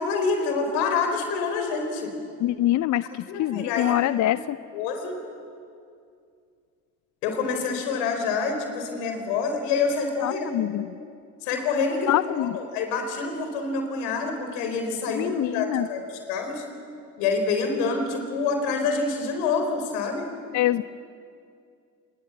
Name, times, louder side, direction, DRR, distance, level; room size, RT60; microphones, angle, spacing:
voice 1, 0.0-2.1 3.3-4.4 4.7-5.2 7.2-10.6 11.4-16.6 17.2-20.3, left 4 dB, 75° left, 5 dB, 4.4 m, -27 dB
voice 2, 2.4-4.6 10.2-10.9 12.1-12.5 15.1-15.9 20.5-20.8, left 14 dB, 45° left, 16 dB, 0.6 m, -24 dB
27.0 x 21.5 x 7.5 m, 2.3 s
hypercardioid pair, 55°, 42 cm